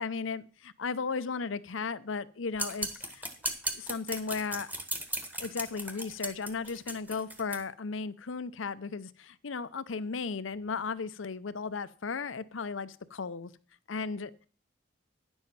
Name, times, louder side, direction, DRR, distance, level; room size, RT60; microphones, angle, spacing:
voice 1, 0.0-3.2 3.7-4.7 5.4-13.5 13.9-14.5, left 5 dB, 85° left, 0.7 m, -35 dB
sound 1, 2.6-7.6, right 1 dB, 10° right, 1.2 m, -36 dB
10.5 x 7.1 x 5.7 m
head